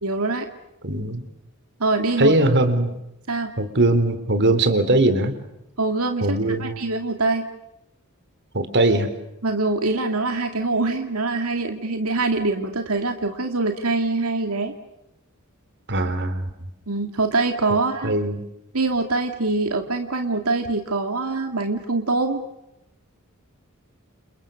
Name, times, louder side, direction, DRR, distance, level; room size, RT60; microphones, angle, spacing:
voice 1, 0.0-0.5 1.8-2.4 3.3-3.5 5.8-7.5 9.4-14.7 16.9-18.1 18.7-22.4, right 3 dB, 85° right, 5 dB, 2.4 m, -24 dB
voice 2, 0.8-1.2 2.2-2.9 3.6-5.4 6.2-6.8 8.5-9.1 15.9-16.5 18.0-18.5, right 2 dB, 55° right, 10 dB, 3.8 m, -20 dB
29.5 x 29.0 x 6.6 m, 0.86 s
head